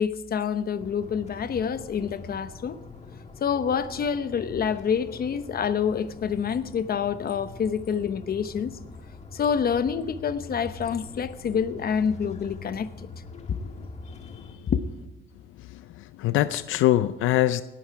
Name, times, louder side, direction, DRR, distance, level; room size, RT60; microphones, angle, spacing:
voice 1, 0.0-2.8 3.4-8.7 9.3-12.9 14.7-14.8, left 7 dB, 50° left, 1.0 m, -27 dB
sound 1, 0.8-14.5, left 3 dB, 35° left, 1.6 m, -43 dB
voice 2, 15.7-17.6, left 14 dB, 85° left, 0.5 m, -24 dB
18.0 x 11.0 x 4.8 m
cardioid pair, 90°, 20 cm